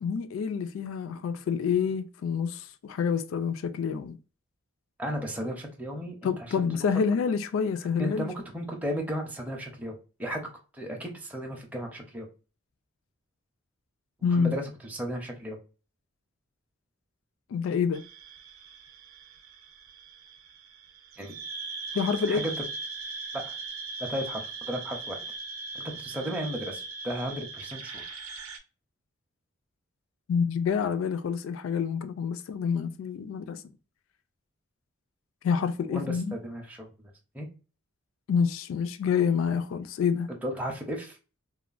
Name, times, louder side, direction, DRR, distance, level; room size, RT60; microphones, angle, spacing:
voice 1, 0.0-4.2 6.2-8.3 14.2-14.6 17.5-18.1 21.9-22.4 30.3-33.6 35.4-36.3 38.3-40.3, left 6 dB, 70° left, 0.3 m, -27 dB
voice 2, 5.0-6.7 8.0-12.3 14.3-15.6 21.2-21.3 22.3-22.6 23.3-23.5 24.0-25.2 25.7-28.0 35.9-36.9 37.3-37.5 40.4-41.2, equal, 5° right, 0.5 m, -35 dB
sound 1, 17.9-28.6, right 4 dB, 85° right, 0.5 m, -40 dB
3.0 x 2.1 x 2.4 m
head